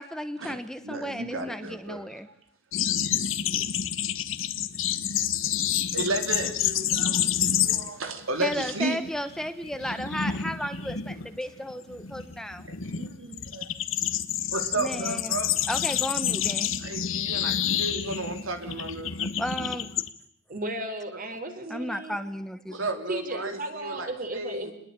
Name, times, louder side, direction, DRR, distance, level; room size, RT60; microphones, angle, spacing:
voice 1, 0.0-2.3 8.4-12.7 14.8-15.4 15.7-16.8 19.4-19.9 21.7-22.9, equal, 5° left, 9 dB, 1.2 m, -34 dB
voice 2, 0.8-2.1 5.4-5.6 5.9-9.0 12.8-13.7 14.5-15.6 16.8-19.3 22.7-24.7, right 2 dB, 85° right, 6 dB, 3.6 m, -33 dB
sound 1, 2.7-8.1 8.4-8.7 9.0-20.1, left 9 dB, 75° left, 1.6 m, -28 dB
voice 3, 20.5-22.2 23.1-24.7, right 1 dB, 45° right, 6 dB, 4.6 m, -34 dB
27.0 x 21.0 x 9.1 m, 0.66 s
head